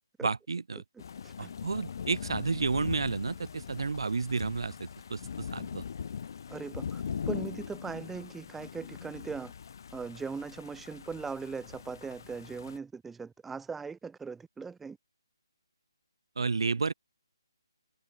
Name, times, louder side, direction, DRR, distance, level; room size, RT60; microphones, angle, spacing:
voice 1, 0.2-0.8 1.4-5.8 16.4-16.9, right 4 dB, 70° right, 0.4 m, -31 dB
Thunder / Rain, 1.0-12.8, left 7 dB, 50° left, 1.9 m, -41 dB
voice 2, 6.5-9.5 9.9-15.0, right 5 dB, 5° right, 0.3 m, -40 dB
figure-of-eight pair, 150°, 3 cm